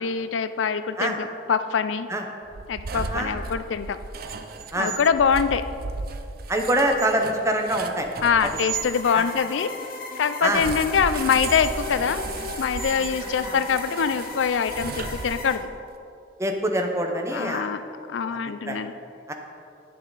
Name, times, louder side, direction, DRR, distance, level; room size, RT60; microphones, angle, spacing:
voice 1, 0.0-2.1 2.7-4.0 4.7-5.6 8.2-9.7 10.2-12.2 12.6-15.7 17.3-17.8 18.1-18.9, left 6 dB, 85° left, 12 dB, 0.4 m, -24 dB
sound 1, 2.5-8.9 10.5-15.7, right 4 dB, 55° right, 0.6 m, -35 dB
voice 2, 2.9-3.4 4.7-4.9 6.5-8.1 9.1-9.3 10.4-10.6 13.5-13.6 16.4-17.7 18.3-18.4 18.7-18.8 19.3-19.4, right 1 dB, 15° right, 3 dB, 0.8 m, -25 dB
sound 2, 8.7-15.6, left 3 dB, 50° left, 1.2 m, -37 dB
10.5 x 8.5 x 4.0 m, 2.6 s
head